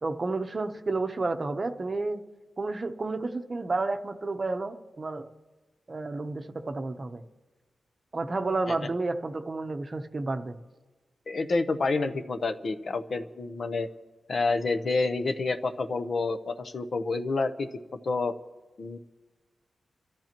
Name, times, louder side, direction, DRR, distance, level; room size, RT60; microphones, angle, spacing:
voice 1, 0.0-2.2 2.6-5.3 5.9-7.2 8.1-10.6, right 3 dB, 30° right, 6 dB, 0.8 m, -31 dB
voice 2, 11.3-13.9 14.3-17.7 18.0-18.3 18.8-19.0, left 3 dB, 45° left, 9 dB, 0.8 m, -28 dB
30.0 x 13.5 x 3.0 m, 1.2 s
wide cardioid pair, 140°, 0 cm